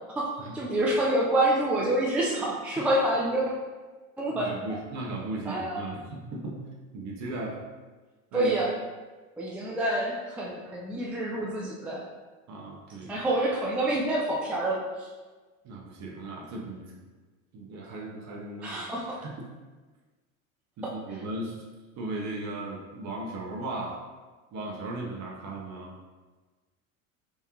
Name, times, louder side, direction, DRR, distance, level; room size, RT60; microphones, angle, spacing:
voice 1, 0.1-3.5 4.2-4.8 5.5-5.8 8.3-8.7 9.4-12.0 13.1-15.1 18.6-19.2 20.8-20.9, right 1 dB, 5° right, -4 dB, 0.4 m, -27 dB
voice 2, 4.3-6.6 6.9-7.6 8.3-8.6 12.5-13.1 15.6-17.0 17.5-19.4 20.8-21.6 22.0-24.0 24.5-25.9, right 2 dB, 40° right, -1 dB, 0.9 m, -37 dB
3.6 x 3.4 x 2.9 m, 1.3 s
hypercardioid pair, 80°, 42 cm